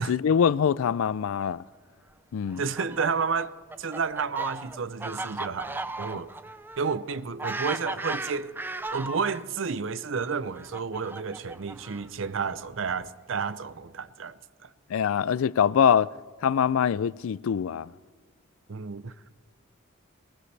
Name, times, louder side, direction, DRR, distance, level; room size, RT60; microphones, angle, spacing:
voice 1, 0.0-1.6 2.3-2.6 14.9-16.1 16.4-17.9, left 7 dB, 90° left, 0.4 m, -24 dB
Fowl, 2.5-9.4 10.2-12.3, right 2 dB, 10° right, 0.4 m, -36 dB
voice 2, 2.6-6.3 6.8-8.6 8.9-14.7 18.7-19.3, right 5 dB, 70° right, 0.6 m, -31 dB
21.0 x 19.5 x 3.3 m
head